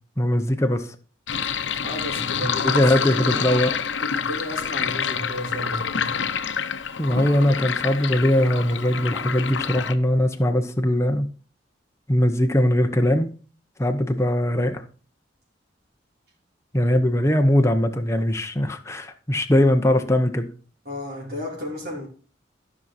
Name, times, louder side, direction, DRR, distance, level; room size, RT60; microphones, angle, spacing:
voice 1, 0.2-0.9 2.4-3.7 7.0-11.3 12.1-13.3 13.8-14.8 16.7-20.5, left 1 dB, 15° left, 0.9 m, -21 dB
Sink (filling or washing), 1.3-9.9, left 7 dB, 80° left, 0.8 m, -27 dB
voice 2, 1.8-3.6 4.1-6.2 20.8-22.1, left 1 dB, 60° right, 3.3 m, -34 dB
13.0 x 6.1 x 4.1 m
head